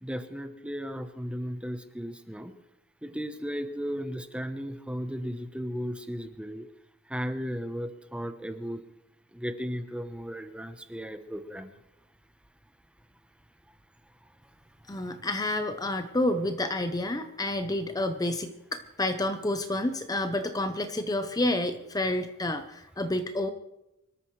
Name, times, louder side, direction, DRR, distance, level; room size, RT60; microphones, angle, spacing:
voice 1, 0.0-2.5 3.0-6.7 7.1-8.8 9.3-11.7, equal, 5° right, 8 dB, 0.9 m, -35 dB
voice 2, 14.9-23.5, left 1 dB, 20° left, 8 dB, 0.8 m, -29 dB
25.0 x 13.0 x 3.3 m, 0.90 s
head